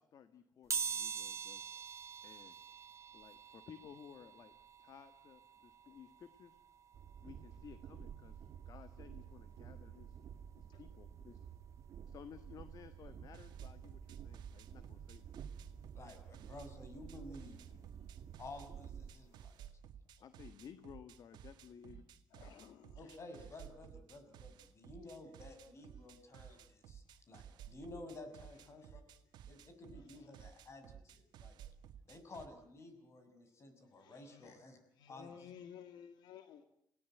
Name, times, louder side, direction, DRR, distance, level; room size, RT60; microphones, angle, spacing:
voice 1, 0.0-1.6 2.2-2.6 3.1-6.6 7.2-10.2 10.5-11.4 12.1-15.2 20.2-22.0, left 8 dB, 60° left, 11 dB, 1.6 m, -56 dB
sound 1, 0.7-11.4 11.8-11.9 13.1-13.2 13.5-15.6 15.9-18.5 18.9-19.1 19.4-19.5, right 6 dB, 45° right, 2.2 m, -46 dB
Train, 6.9-19.2, right 8 dB, 65° right, 1.5 m, -52 dB
sound 2, 13.3-16.7 17.1-32.5, right 9 dB, 85° right, 1.9 m, -55 dB
voice 2, 15.9-18.1 18.4-19.6 23.0-29.0 29.5-31.6 32.1-34.8 35.1-35.5, left 2 dB, 40° left, 8 dB, 6.1 m, -53 dB
voice 3, 22.3-23.2 28.5-28.8 30.1-30.3 34.0-34.5 35.0-36.6, left 8 dB, 90° left, 9 dB, 1.8 m, -55 dB
28.0 x 18.0 x 9.1 m, 0.72 s
cardioid pair, 115°, 7 cm